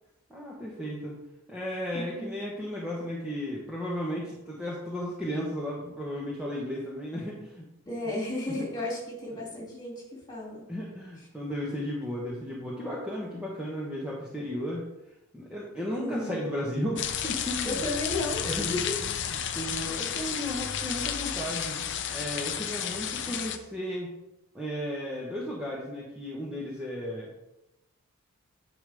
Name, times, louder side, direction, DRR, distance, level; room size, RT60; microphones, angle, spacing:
voice 1, 0.3-1.2 1.5-7.7 8.5-8.6 10.7-14.9 15.3-17.8 18.4-19.1 19.5-21.8 22.1-24.1 24.5-27.3, equal, 5° right, -5 dB, 1.1 m, -34 dB
voice 2, 1.9-2.4 7.9-10.6 15.9-16.4 17.6-18.9, left 1 dB, 20° left, -4 dB, 2.7 m, -34 dB
sound 1, 17.0-23.6, left 8 dB, 55° left, 0.6 m, -32 dB
9.8 x 5.3 x 3.5 m, 0.88 s
head